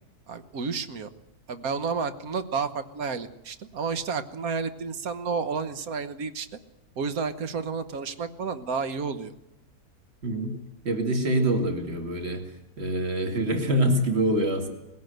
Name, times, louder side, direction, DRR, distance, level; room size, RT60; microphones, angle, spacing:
voice 1, 0.3-1.1 1.5-6.5 7.0-9.3, right 5 dB, 65° right, 11 dB, 1.6 m, -31 dB
voice 2, 10.2-10.6 10.8-12.4 12.8-14.7, right 1 dB, 40° right, 4 dB, 2.6 m, -25 dB
20.0 x 16.5 x 7.9 m, 0.99 s
omnidirectional pair, 1.7 m